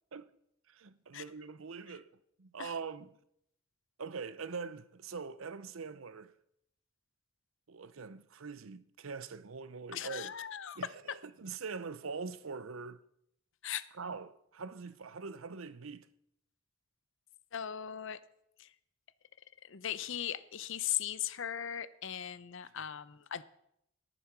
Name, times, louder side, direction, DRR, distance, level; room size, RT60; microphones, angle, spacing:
voice 1, 0.7-2.1 2.4-3.2 4.0-6.3 7.7-10.3 10.8-13.0 14.0-16.1 22.6-22.7, right 5 dB, 80° right, 0.7 m, -43 dB
voice 2, 9.9-10.9 13.6-13.9 17.5-18.2 18.6-18.7 19.6-23.4, left 10 dB, 65° left, 0.7 m, -38 dB
18.5 x 7.0 x 6.0 m
head